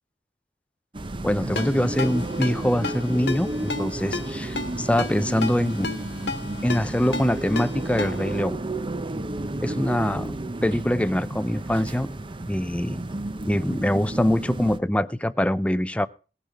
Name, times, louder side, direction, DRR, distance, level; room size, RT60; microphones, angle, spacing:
sound 1, 0.9-14.8, right 1 dB, 30° right, 0.7 m, -32 dB
voice 1, 1.2-5.9 6.6-8.6 9.6-10.3 10.6-12.1 12.5-13.0 13.5-16.1, left 1 dB, 5° left, 13 dB, 0.5 m, -24 dB
Ringtone, 1.6-8.4, left 3 dB, 70° left, 1.5 m, -34 dB
18.0 x 10.5 x 3.6 m, 0.34 s
head